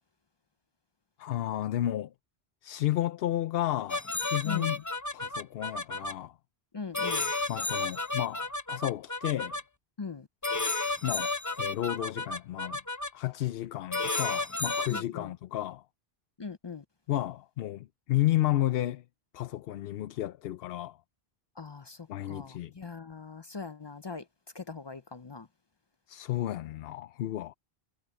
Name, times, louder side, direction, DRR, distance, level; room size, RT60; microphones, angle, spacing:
voice 1, 1.2-2.1 2.6-4.8 5.1-6.3 7.5-9.6 11.0-12.8 13.1-15.8 17.1-19.0 19.3-21.0 22.1-22.7 26.1-27.5, left 14 dB, 70° left, 0.8 m, -32 dB
sound 1, 3.9-6.1 6.9-9.6 10.4-13.1 13.9-15.0, left 3 dB, 20° left, 1.1 m, -32 dB
voice 2, 4.4-4.8 6.7-7.3 10.0-10.3 14.9-15.3 16.4-16.8 21.6-22.0 22.3-24.2 24.5-25.5, left 4 dB, 40° left, 0.4 m, -41 dB
omnidirectional pair, 1.1 m